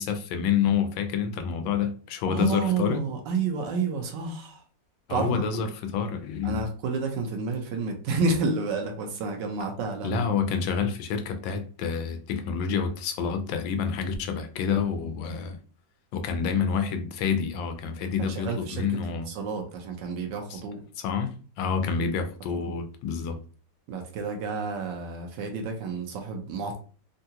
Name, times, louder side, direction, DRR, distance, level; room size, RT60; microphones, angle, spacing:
voice 1, 0.0-3.0 5.1-6.6 10.0-15.6 16.1-19.3 20.5-20.6 21.0-23.4, left 6 dB, 85° left, 1.3 m, -28 dB
voice 2, 2.3-4.6 5.1-5.4 6.4-10.2 18.2-19.0 19.3-20.8 22.4-22.8 23.9-26.8, right 4 dB, 75° right, 1.3 m, -30 dB
3.7 x 2.2 x 2.7 m
omnidirectional pair, 2.0 m